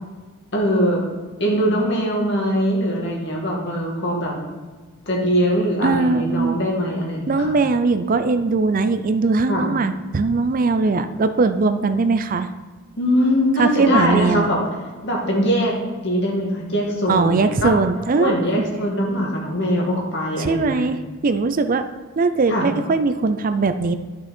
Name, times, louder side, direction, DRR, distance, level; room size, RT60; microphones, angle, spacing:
voice 1, 0.5-1.0 1.4-4.4 5.1-7.5 9.5-9.7 13.0-14.6 15.0-15.8 16.0-17.7 18.2-20.8 22.5-22.7, equal, 55° left, -2 dB, 2.3 m, -21 dB
voice 2, 5.8-6.6 7.3-12.5 13.6-14.5 17.1-18.3 20.4-21.0 21.2-21.8 22.2-24.0, right 3 dB, 40° right, 10 dB, 0.4 m, -20 dB
11.0 x 6.2 x 4.3 m, 1.4 s
head